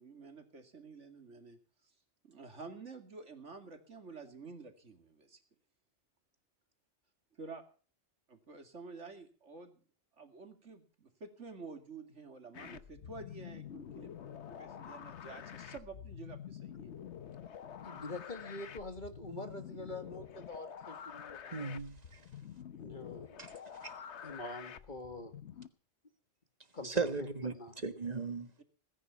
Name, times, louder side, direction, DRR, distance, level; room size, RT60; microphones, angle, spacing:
voice 1, 0.0-1.6 2.2-5.4 7.4-7.6 8.3-9.8 10.2-16.9 28.6-28.7, right 4 dB, 75° right, 2.7 m, -50 dB
sound 1, 12.5-25.7, left 8 dB, 70° left, 1.2 m, -48 dB
voice 2, 17.8-21.8 22.8-23.4 24.2-25.4 26.7-27.3 27.5-27.7, left 2 dB, 40° left, 2.0 m, -45 dB
voice 3, 21.5-22.2 23.4-23.5 23.8-23.9 26.8-28.5, right 4 dB, 35° right, 1.5 m, -37 dB
19.5 x 10.0 x 5.9 m
omnidirectional pair, 1.2 m